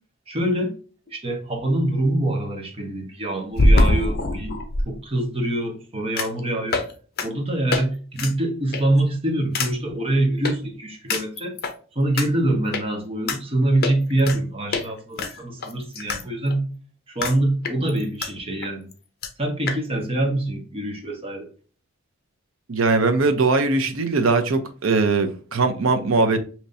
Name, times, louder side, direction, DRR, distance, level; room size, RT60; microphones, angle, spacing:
voice 1, 0.3-0.8 1.1-4.6 4.8-6.8 7.2-11.6 11.9-16.6 17.1-18.9 19.4-21.5, right 1 dB, 30° right, 1.0 m, -24 dB
sound 1, 1.1-1.2 3.5-4.8 6.2-6.4 6.7-6.9 7.2-7.3 7.7-7.8 8.2-8.3 8.7-9.0 9.5-9.7 10.4-10.5 11.1-11.7 12.2-12.3 12.7-12.8 13.3-13.4 13.8-14.4 14.7-14.9 15.2-16.2 16.5-16.6 17.2-17.4 17.6-18.3 18.6-18.7 18.9-19.0 19.2-19.3 19.7-19.8, left 1 dB, 50° left, 0.7 m, -22 dB
voice 2, 22.7-26.4, right 3 dB, 80° right, 0.7 m, -20 dB
5.3 x 2.9 x 2.6 m
head